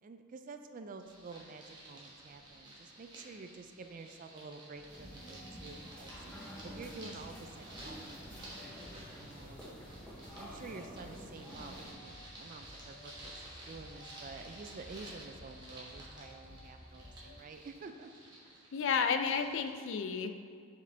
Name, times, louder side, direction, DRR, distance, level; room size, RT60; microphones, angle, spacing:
voice 1, 0.0-6.1 6.6-8.3 9.2-9.8 10.4-18.1, right 4 dB, 35° right, 7 dB, 0.3 m, -49 dB
sound 1, 1.0-19.7, right 1 dB, 20° right, 1.1 m, -53 dB
sound 2, 4.7-17.4, left 1 dB, 35° left, 1.1 m, -55 dB
sound 3, 4.9-11.9, equal, 5° left, 0.8 m, -50 dB
voice 2, 18.7-20.4, left 6 dB, 55° left, 7 dB, 0.4 m, -32 dB
6.9 x 4.9 x 3.3 m, 2.2 s
head